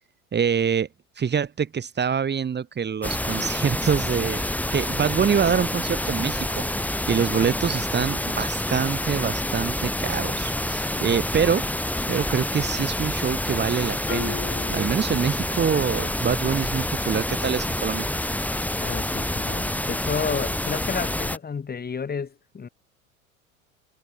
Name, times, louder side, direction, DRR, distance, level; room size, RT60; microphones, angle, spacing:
voice 1, 0.3-0.9 1.2-4.4 4.7-11.6 12.1-14.4 14.7-18.1, right 7 dB, 25° right, 3.4 m, -25 dB
sound 1, 3.0-21.4, left 1 dB, 5° left, 4.6 m, -28 dB
Marimba xylophone, 14.1-15.8, left 24 dB, 60° left, 2.4 m, -36 dB
voice 2, 18.8-22.7, left 6 dB, 20° left, 5.4 m, -31 dB
hypercardioid pair, 85°, 42 cm